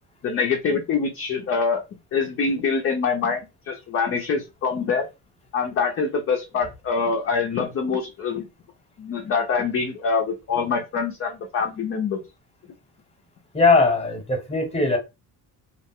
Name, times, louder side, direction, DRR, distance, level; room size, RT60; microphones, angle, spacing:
voice 1, 0.2-1.8 2.1-5.1 5.5-8.5 9.0-12.2, left 5 dB, 35° left, 0.5 m, -25 dB
voice 2, 13.5-15.0, left 3 dB, 15° left, 1.0 m, -19 dB
2.4 x 2.0 x 3.6 m
cardioid pair, 115°, 39 cm